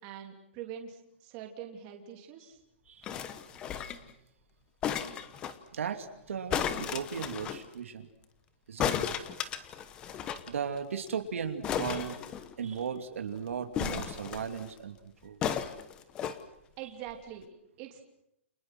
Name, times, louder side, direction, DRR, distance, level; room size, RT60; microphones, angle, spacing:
voice 1, 0.0-2.6 16.8-18.0, right 9 dB, 20° right, 2 dB, 3.1 m, -44 dB
sound 1, 3.0-4.1 4.8-5.6 6.5-7.6 8.8-10.5 10.8-10.9 11.1-11.2 11.6-12.8 13.7-14.7 15.4-16.4 17.1-17.2, left 8 dB, 15° left, 1.0 m, -34 dB
voice 2, 5.7-8.1 8.7-9.0 10.5-12.2 12.6-15.4 16.8-16.9, right 7 dB, 85° right, 6 dB, 2.8 m, -36 dB
29.5 x 28.5 x 6.1 m, 0.79 s
hypercardioid pair, 180°, 7 cm